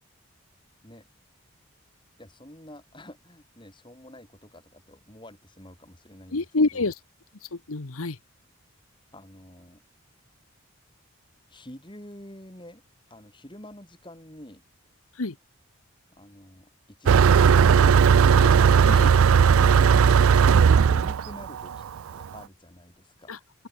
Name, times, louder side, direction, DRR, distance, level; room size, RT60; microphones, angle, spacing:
voice 1, 2.2-6.4 6.7-6.9 9.1-9.8 11.5-12.8 13.1-14.6 16.1-16.7 17.0-18.1 19.5-19.8 20.9-21.8 22.1-23.4, left 1 dB, 20° left, 3.3 m, -47 dB
voice 2, 6.3-7.0 7.4-8.2 15.1-15.4 18.4-18.5 18.8-19.1 23.3-23.4, left 3 dB, 85° left, 1.2 m, -27 dB
Motor vehicle (road), 17.1-22.2, right 6 dB, 80° right, 0.4 m, -17 dB
open air
head